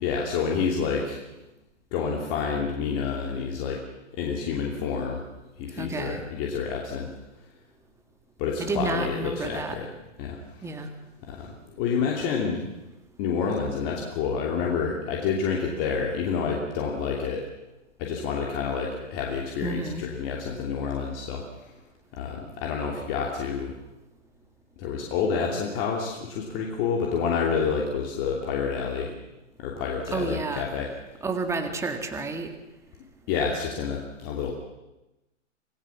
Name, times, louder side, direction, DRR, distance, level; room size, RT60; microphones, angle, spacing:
voice 1, 0.0-1.2 1.9-3.8 4.1-5.2 5.6-7.1 8.4-9.9 10.2-10.6 11.2-12.7 13.2-17.4 18.0-21.7 22.1-23.7 24.8-29.2 29.6-30.9 33.3-34.5, left 6 dB, 30° left, -1 dB, 2.9 m, -28 dB
voice 2, 5.8-6.2 8.6-9.8 10.6-10.9 19.6-20.0 30.1-30.7 31.2-32.5, right 3 dB, 5° right, 6 dB, 1.9 m, -30 dB
26.5 x 17.5 x 7.3 m, 0.98 s
hypercardioid pair, 140°, 38 cm